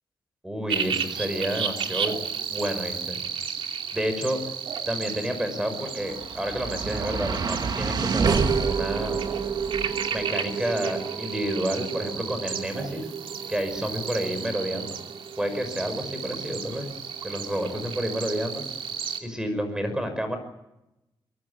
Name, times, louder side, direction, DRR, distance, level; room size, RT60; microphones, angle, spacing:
voice 1, 0.4-2.2 2.5-3.2 3.9-4.4 4.9-9.2 10.1-13.1 13.5-15.0 15.4-16.9 17.2-18.6 19.2-20.4, equal, 10° right, 8 dB, 5.9 m, -30 dB
sound 1, 0.7-19.2, right 7 dB, 85° right, 2.9 m, -33 dB
sound 2, 5.7-18.0, right 5 dB, 55° right, 2.3 m, -31 dB
23.5 x 23.0 x 8.6 m, 0.90 s
wide cardioid pair, 130°, 9 cm